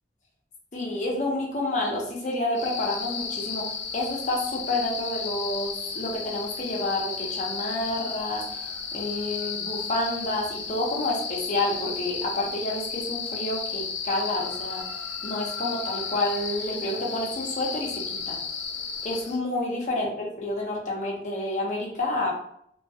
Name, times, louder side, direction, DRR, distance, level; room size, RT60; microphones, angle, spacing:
voice 1, 0.7-3.7 3.9-8.6 8.9-14.8 15.2-18.4 19.0-22.3, left 1 dB, 40° left, -2 dB, 0.6 m, -29 dB
sound 1, 2.5-19.4, left 6 dB, 85° left, 0.5 m, -34 dB
2.3 x 2.1 x 2.6 m, 0.70 s
head